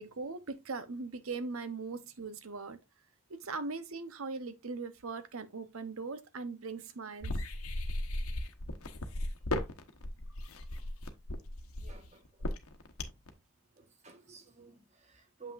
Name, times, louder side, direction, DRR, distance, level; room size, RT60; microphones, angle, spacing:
voice 1, 0.0-2.8 3.4-7.4, right 4 dB, 75° right, 0.8 m, -40 dB
sound 1, 7.2-13.3, left 1 dB, 80° left, 1.0 m, -36 dB
voice 2, 11.8-12.5 13.7-15.5, right 4 dB, 30° right, 1.2 m, -53 dB
7.0 x 5.7 x 2.4 m
head